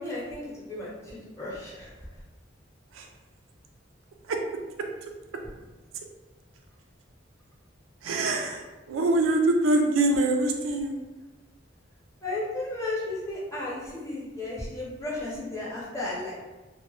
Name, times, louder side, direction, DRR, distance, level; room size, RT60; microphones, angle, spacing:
voice 1, 0.0-2.2 12.2-16.3, left 2 dB, 15° left, -7 dB, 0.7 m, -34 dB
voice 2, 8.0-8.6 8.9-11.0, right 2 dB, 90° right, 3 dB, 0.4 m, -24 dB
2.1 x 2.1 x 3.0 m, 1.2 s
head